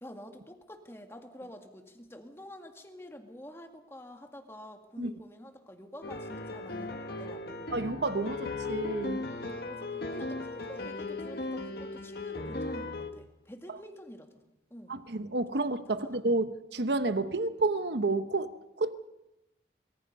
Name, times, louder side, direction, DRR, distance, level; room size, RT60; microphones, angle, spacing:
voice 1, 0.0-7.8 9.3-14.4 14.7-14.9 16.0-16.2, equal, 15° left, 2.0 m, -48 dB
sound 1, 6.0-13.1, left 2 dB, 60° left, 1.8 m, -37 dB
voice 2, 7.7-9.3 14.9-18.9, right 2 dB, 75° right, 1.0 m, -30 dB
25.0 x 23.0 x 5.4 m
head